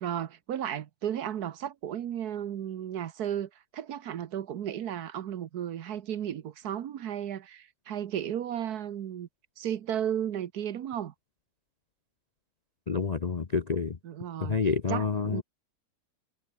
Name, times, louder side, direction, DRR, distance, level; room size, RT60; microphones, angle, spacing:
voice 1, 0.0-9.3 9.6-11.1 14.0-14.6 14.9-15.4, right 10 dB, 65° right, 1.4 m, -34 dB
voice 2, 12.9-14.0 14.4-15.4, left 5 dB, 40° left, 0.6 m, -28 dB
omnidirectional pair, 1.9 m